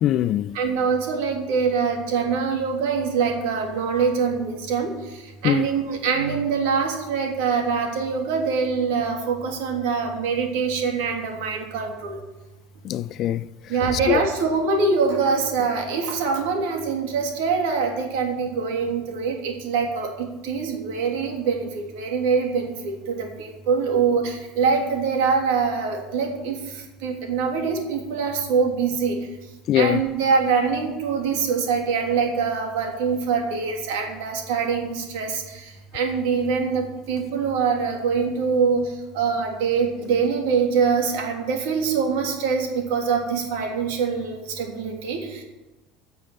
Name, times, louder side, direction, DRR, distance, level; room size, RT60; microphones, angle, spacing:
voice 1, 0.0-0.6 5.4-5.7 12.8-13.5 14.1-14.2 29.7-30.0, left 13 dB, 50° left, 0.3 m, -21 dB
voice 2, 0.5-4.9 5.4-12.2 13.7-26.6 27.0-29.2 29.7-38.8 39.1-45.4, right 5 dB, 80° right, 3.1 m, -24 dB
11.0 x 6.9 x 9.0 m
supercardioid pair, 105°, 0 cm